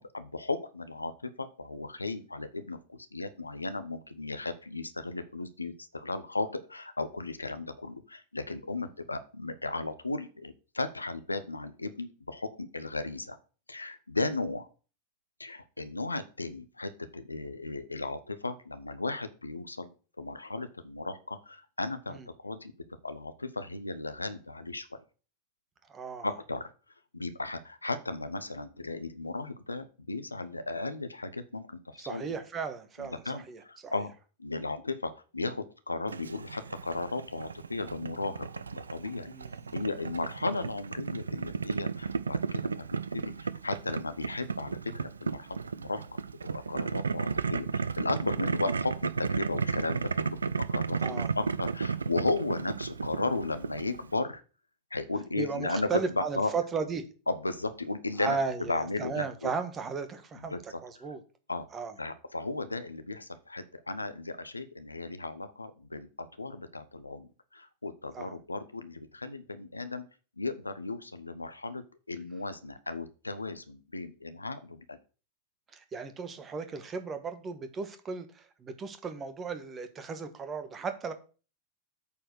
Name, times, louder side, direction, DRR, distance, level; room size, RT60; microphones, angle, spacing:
voice 1, 0.0-13.4 13.7-14.7 15.4-22.7 23.0-25.0 26.2-26.7 27.1-32.3 33.0-34.1 34.4-39.3 39.7-46.0 46.5-54.4 54.9-56.5 57.3-58.4 58.7-59.5 60.5-61.1 61.5-61.7 62.0-70.1 70.4-71.8 72.1-75.0, left 3 dB, 80° left, 0.9 m, -35 dB
voice 2, 25.9-26.3 32.0-33.9 39.3-39.8 51.0-51.3 55.4-57.0 58.2-60.6 60.8-61.2 61.7-61.9 68.1-68.3 75.7-81.1, right 5 dB, 25° right, 1.5 m, -35 dB
Boiling, 36.1-54.2, right 5 dB, 75° right, 0.4 m, -34 dB
8.4 x 4.7 x 6.3 m
figure-of-eight pair, 90°, 0 cm